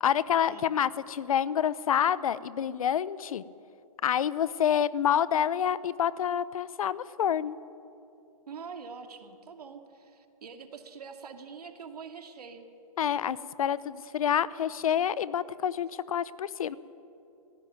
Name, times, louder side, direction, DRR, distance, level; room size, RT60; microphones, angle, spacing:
voice 1, 0.0-3.4 4.0-7.6 13.0-16.8, left 9 dB, 65° left, 18 dB, 0.8 m, -28 dB
voice 2, 8.5-12.7, right 5 dB, 75° right, 6 dB, 2.4 m, -44 dB
18.0 x 15.5 x 9.4 m, 2.7 s
hypercardioid pair, 150°, 20 cm